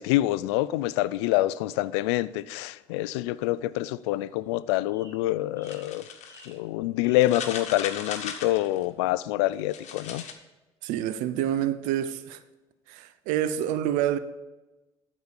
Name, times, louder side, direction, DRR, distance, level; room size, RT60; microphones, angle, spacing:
voice 1, 0.0-6.1 6.5-10.2, left 16 dB, 75° left, 0.4 m, -26 dB
sound 1, 3.7-4.5 4.9-5.3 5.6-5.9 6.2-6.6 7.0-7.4, right 2 dB, 25° right, 2.8 m, -54 dB
sound 2, 5.6-6.5 7.2-8.8 9.5-10.3, left 7 dB, 55° left, 1.4 m, -37 dB
voice 2, 10.8-12.4 12.9-14.2, right 11 dB, 70° right, 0.7 m, -27 dB
11.5 x 5.1 x 6.9 m
hypercardioid pair, 60°, 14 cm